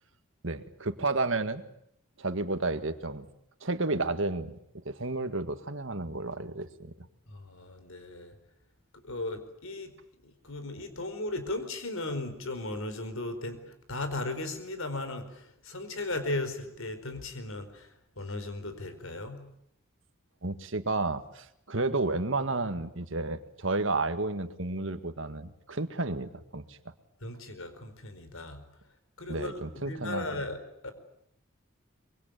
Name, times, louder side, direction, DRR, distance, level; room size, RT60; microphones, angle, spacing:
voice 1, 0.4-1.6 2.2-3.3 3.6-4.6 4.9-7.1 20.4-26.8 29.3-30.5, right 2 dB, 60° right, 10 dB, 1.8 m, -31 dB
voice 2, 7.3-8.4 8.9-9.9 10.2-19.4 27.2-28.6 29.2-30.9, left 2 dB, 70° left, 9 dB, 4.6 m, -37 dB
25.0 x 23.5 x 9.2 m, 0.73 s
head